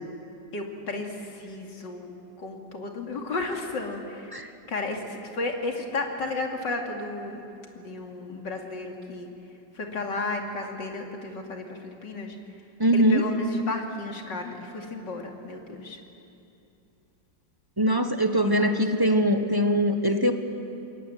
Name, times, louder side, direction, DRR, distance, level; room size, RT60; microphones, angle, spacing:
voice 1, 0.5-7.4 7.7-9.3 9.7-12.4 12.9-16.0 18.3-18.8, left 3 dB, 75° left, 2 dB, 3.2 m, -33 dB
voice 2, 12.8-13.2 17.8-20.3, equal, 15° right, 6 dB, 1.1 m, -22 dB
27.5 x 22.0 x 9.4 m, 2.7 s
omnidirectional pair, 1.9 m